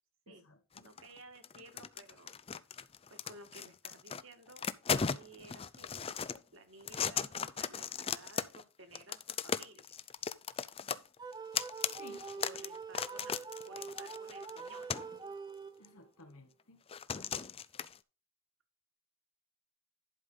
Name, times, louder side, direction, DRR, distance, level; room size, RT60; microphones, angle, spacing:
voice 1, 0.3-0.9 11.9-12.3 15.8-16.8, left 2 dB, 80° left, 1.8 m, -56 dB
sound 1, 0.8-1.2 1.4-4.2 4.5-6.4 6.8-8.6 8.9-15.2 15.8-15.9 16.9-18.0, left 6 dB, 25° left, 0.4 m, -37 dB
voice 2, 0.8-2.3 3.1-5.9 6.5-10.0 12.4-15.0, right 2 dB, 60° right, 1.9 m, -55 dB
sound 2, 11.2-16.1, right 5 dB, 20° right, 0.6 m, -45 dB
11.0 x 5.3 x 3.8 m
head